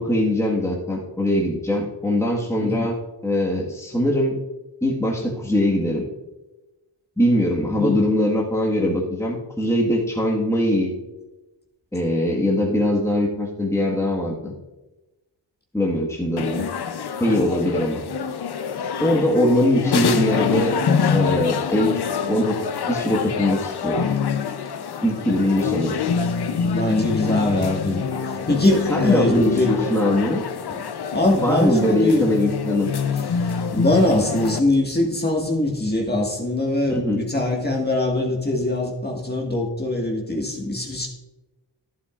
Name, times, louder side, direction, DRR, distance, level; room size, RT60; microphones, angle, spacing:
voice 1, 0.0-3.0 3.2-4.4 4.8-6.1 7.2-10.9 11.9-14.5 15.7-16.7 17.2-18.0 19.0-20.8 21.1-22.0 22.3-22.6 22.9-24.0 25.0-26.0 28.9-30.4 31.4-32.9 36.9-37.2, left 1 dB, 5° left, -3 dB, 1.7 m, -21 dB
sound 1, 16.4-34.6, left 6 dB, 60° left, 0.8 m, -26 dB
voice 2, 26.6-29.7 31.1-32.2 33.7-41.1, left 2 dB, 20° left, 0 dB, 1.8 m, -22 dB
11.5 x 11.0 x 2.5 m, 1.0 s
cardioid pair, 65°, 44 cm